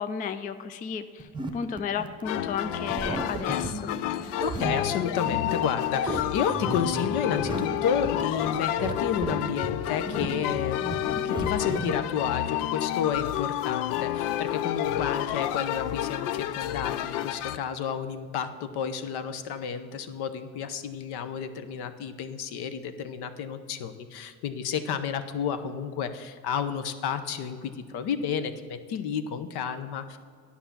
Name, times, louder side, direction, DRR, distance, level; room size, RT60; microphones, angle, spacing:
voice 1, 0.0-3.9, left 6 dB, 20° left, 11 dB, 0.3 m, -33 dB
sound 1, 1.2-12.1, right 2 dB, 10° right, 0.8 m, -35 dB
sound 2, 2.2-17.6, left 12 dB, 80° left, 0.5 m, -30 dB
voice 2, 4.4-30.2, left 7 dB, 60° left, 10 dB, 0.9 m, -31 dB
9.8 x 5.7 x 5.9 m, 2.1 s
supercardioid pair, 80°, 44 cm